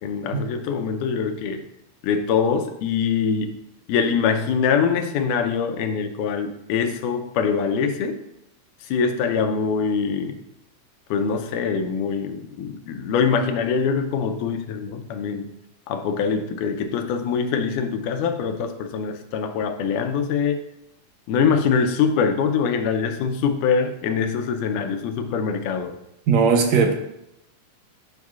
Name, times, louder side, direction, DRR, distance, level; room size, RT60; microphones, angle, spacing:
voice 1, 0.0-1.7 2.0-3.5 3.9-8.2 8.8-10.4 11.1-15.5 15.9-20.6 21.3-26.0, left 6 dB, 85° left, 6 dB, 2.2 m, -23 dB
voice 2, 26.3-26.9, right 5 dB, 70° right, 4 dB, 1.8 m, -17 dB
9.1 x 5.4 x 2.4 m, 0.82 s
omnidirectional pair, 3.6 m